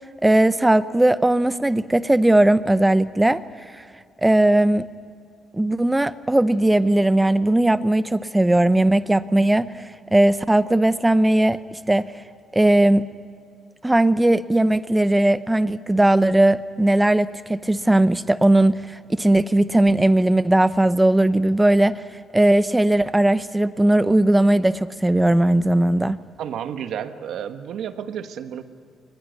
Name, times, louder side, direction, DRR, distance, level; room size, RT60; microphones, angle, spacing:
voice 1, 0.2-3.4 4.2-4.9 5.5-11.6 11.9-12.1 12.5-13.1 13.8-22.0 22.3-26.2, right 1 dB, 10° right, 14 dB, 0.8 m, -18 dB
voice 2, 26.4-28.6, right 9 dB, 75° right, 9 dB, 1.4 m, -31 dB
22.5 x 20.0 x 9.4 m, 2.3 s
cardioid pair, 90°, 0 cm